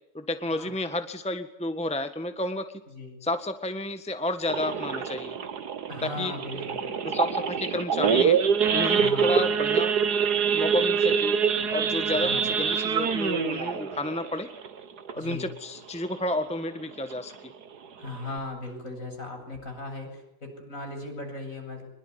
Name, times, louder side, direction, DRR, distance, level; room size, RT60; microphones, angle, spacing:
voice 1, 0.1-2.7 3.2-5.4 6.0-6.3 7.0-8.4 8.7-9.9 10.5-11.4 11.7-14.5 15.1-17.5, left 1 dB, 5° left, 9 dB, 1.5 m, -31 dB
Idling / Accelerating revving vroom / Sawing, 4.5-15.6 16.0-16.2 16.4-16.5 17.0-17.3 17.7-17.8 18.0-18.4, right 6 dB, 80° right, 2.0 m, -25 dB
voice 2, 5.9-6.9 9.0-9.3 12.2-12.5 15.2-15.5 18.0-21.9, left 2 dB, 55° left, 3 dB, 8.7 m, -37 dB
25.5 x 22.0 x 9.8 m, 0.87 s
omnidirectional pair, 1.7 m